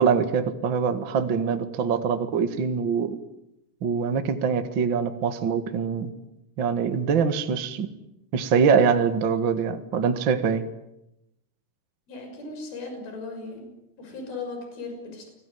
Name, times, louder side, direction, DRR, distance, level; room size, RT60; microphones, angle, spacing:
voice 1, 0.0-3.2 3.8-6.1 6.6-7.9 8.3-10.7, right 6 dB, 50° right, 8 dB, 1.5 m, -23 dB
voice 2, 12.1-13.7 14.0-15.3, left 3 dB, 55° left, 4 dB, 8.0 m, -37 dB
30.0 x 20.0 x 9.5 m, 0.86 s
omnidirectional pair, 5.1 m